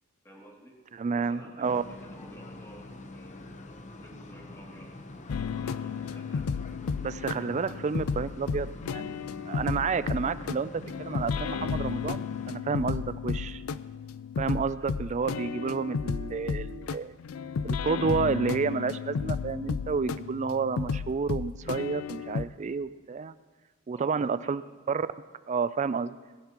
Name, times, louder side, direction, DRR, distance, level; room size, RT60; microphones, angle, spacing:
voice 1, 0.2-0.8 1.1-4.9 5.6-6.5 7.1-7.8 14.8-14.9 23.9-24.6, right 1 dB, 15° left, -2 dB, 2.5 m, -53 dB
voice 2, 0.9-1.8 7.0-9.1 9.5-13.6 14.4-17.2 17.6-23.3 23.9-24.6 24.9-25.1 25.5-26.2, right 5 dB, 35° right, 15 dB, 0.4 m, -30 dB
sound 1, 1.6-12.6, left 2 dB, 35° left, 0.8 m, -45 dB
sound 2, 5.3-22.5, left 5 dB, 80° left, 0.4 m, -33 dB
20.0 x 15.0 x 3.0 m, 1.3 s
head